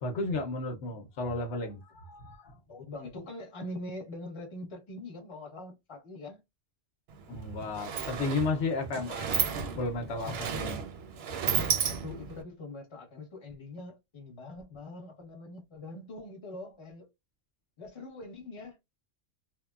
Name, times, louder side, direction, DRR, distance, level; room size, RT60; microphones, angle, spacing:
voice 1, 0.0-2.6 7.3-9.4 9.7-10.8 11.3-11.6, left 3 dB, 70° left, 0.9 m, -33 dB
voice 2, 2.7-6.4 10.2-10.4 11.7-17.1 17.8-18.8, left 2 dB, 25° left, 0.9 m, -43 dB
Sliding door, 7.1-7.2 7.5-12.4, right 7 dB, 65° right, 0.7 m, -33 dB
3.1 x 2.1 x 2.2 m
omnidirectional pair, 1.3 m